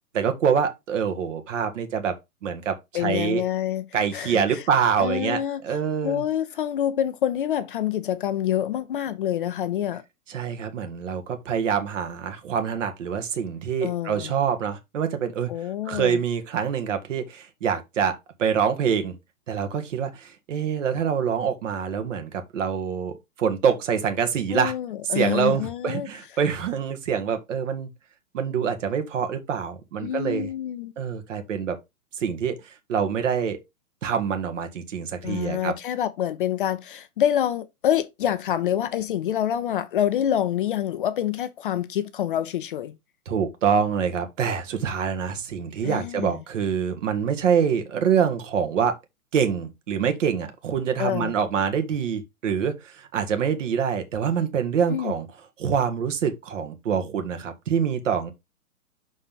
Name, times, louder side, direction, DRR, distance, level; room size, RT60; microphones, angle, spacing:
voice 1, 0.1-2.2 2.4-3.4 3.9-6.2 10.3-15.5 15.9-19.2 19.5-24.7 25.1-27.9 28.3-30.5 31.0-31.8 32.2-33.6 34.0-35.7 43.3-48.9 49.3-55.3 55.6-58.3, right 7 dB, 55° right, 1.8 m, -25 dB
voice 2, 2.9-3.8 4.1-4.6 5.0-5.6 6.0-10.0 13.8-14.3 15.5-16.2 24.5-26.1 30.0-30.9 35.2-43.0 45.8-46.3 51.0-51.3 54.9-55.1, left 10 dB, 35° left, 0.6 m, -26 dB
5.9 x 4.2 x 5.3 m
figure-of-eight pair, 125°, 44 cm